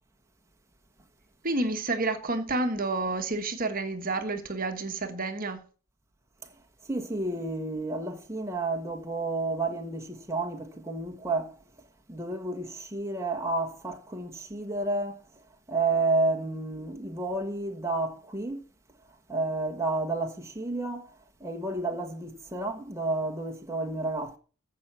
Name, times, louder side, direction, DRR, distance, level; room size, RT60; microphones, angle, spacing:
voice 1, 1.4-5.6, right 2 dB, 40° right, 1.4 m, -29 dB
voice 2, 6.9-11.5 12.1-15.2 15.7-18.6 19.3-21.1 21.4-24.4, right 2 dB, 10° right, 1.4 m, -31 dB
15.0 x 5.8 x 6.2 m
head